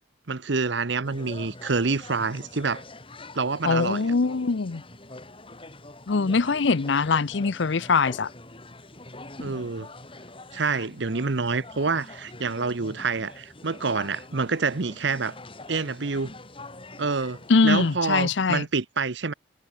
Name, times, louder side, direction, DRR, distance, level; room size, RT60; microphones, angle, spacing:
voice 1, 0.3-2.8 3.3-4.0 9.4-9.9 10.5-15.4 15.7-16.3 17.0-19.3, right 4 dB, 65° right, 0.9 m, -27 dB
sound 1, 1.0-18.0, left 2 dB, 30° left, 6.6 m, -44 dB
voice 2, 3.6-4.8 6.1-8.3 17.5-18.6, left 4 dB, 65° left, 0.6 m, -22 dB
head